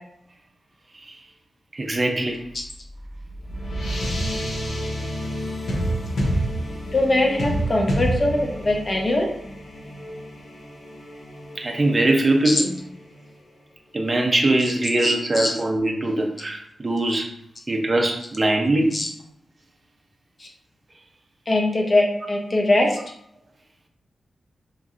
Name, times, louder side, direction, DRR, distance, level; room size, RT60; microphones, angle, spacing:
voice 1, 1.7-2.4 11.6-12.7 13.9-17.3 17.7-18.9, right 2 dB, 25° right, 1 dB, 0.5 m, -21 dB
sound 1, 2.6-13.3, right 1 dB, 85° left, 0.6 m, -29 dB
voice 2, 6.9-9.3 12.4-12.6 15.0-15.5 18.9-19.1 20.4-20.5 21.5-23.0, left 1 dB, 35° left, 0 dB, 0.5 m, -21 dB
3.0 x 2.6 x 2.4 m, 0.71 s
wide cardioid pair, 160°, 0 cm